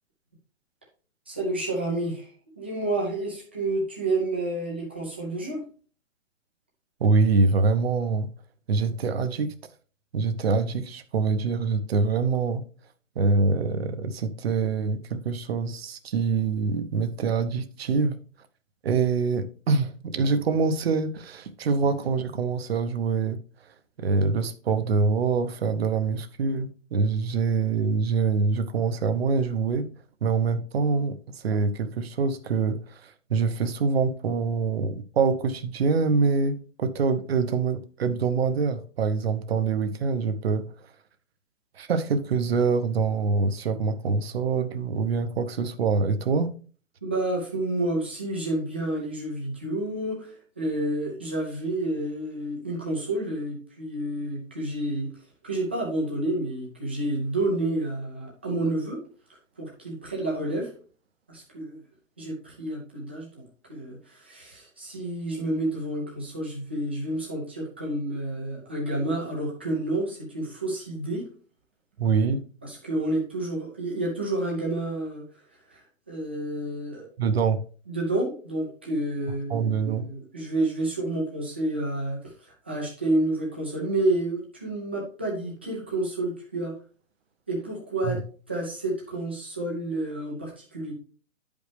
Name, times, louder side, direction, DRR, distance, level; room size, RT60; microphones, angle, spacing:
voice 1, 1.3-5.6 47.0-55.1 55.4-59.0 59.3-60.7 61.3-61.8 62.2-71.2 72.6-75.2 75.7-77.1 77.9-86.7 87.5-88.2 88.5-90.9, right 2 dB, 10° right, 0.5 m, -29 dB
voice 2, 7.0-8.3 8.7-9.5 10.1-12.6 13.2-18.2 18.8-23.4 24.0-29.9 30.2-31.2 31.4-40.7 41.8-46.5 72.0-72.4 77.2-77.6 79.5-80.1 88.1-88.2, right 4 dB, 50° right, 0.8 m, -25 dB
10.0 x 5.2 x 3.2 m
hypercardioid pair, 170°, 40 cm